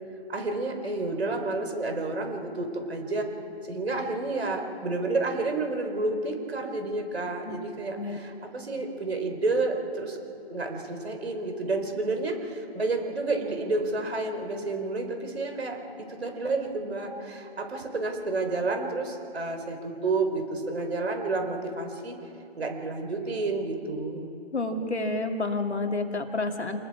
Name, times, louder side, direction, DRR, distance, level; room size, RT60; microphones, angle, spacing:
voice 1, 0.3-3.3 3.7-10.2 10.5-22.2 22.6-24.3, right 3 dB, 70° right, 4 dB, 4.2 m, -30 dB
voice 2, 8.0-8.3 24.5-26.8, left 2 dB, 85° left, 4 dB, 2.5 m, -29 dB
28.5 x 20.5 x 4.9 m, 2.7 s
figure-of-eight pair, 155°, 33 cm